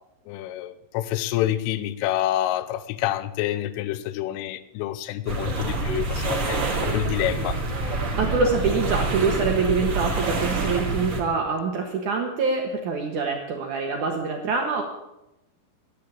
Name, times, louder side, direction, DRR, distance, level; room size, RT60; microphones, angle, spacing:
voice 1, 0.3-7.6, left 13 dB, 80° left, 12 dB, 3.3 m, -27 dB
sound 1, 5.3-11.2, right 3 dB, 35° right, 2.8 m, -27 dB
voice 2, 8.1-14.8, right 4 dB, 85° right, 2 dB, 1.7 m, -25 dB
14.0 x 10.5 x 8.6 m, 0.89 s
omnidirectional pair, 5.9 m